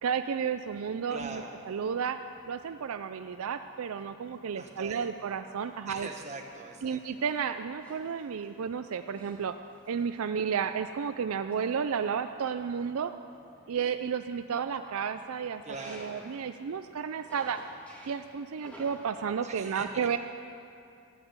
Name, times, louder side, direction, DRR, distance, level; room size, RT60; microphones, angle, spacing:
voice 1, 0.0-1.3 1.7-2.2 2.5-6.1 6.8-9.5 9.9-13.1 13.7-15.6 15.9-17.6 18.1-20.2, right 6 dB, 70° right, 9 dB, 0.4 m, -32 dB
sound 1, 0.6-19.4, equal, 5° left, 2.0 m, -57 dB
voice 2, 1.1-1.5 4.6-5.2 5.9-7.2 15.6-16.2 19.4-20.2, right 3 dB, 30° right, 2 dB, 1.4 m, -42 dB
13.5 x 11.0 x 7.9 m, 2.5 s
head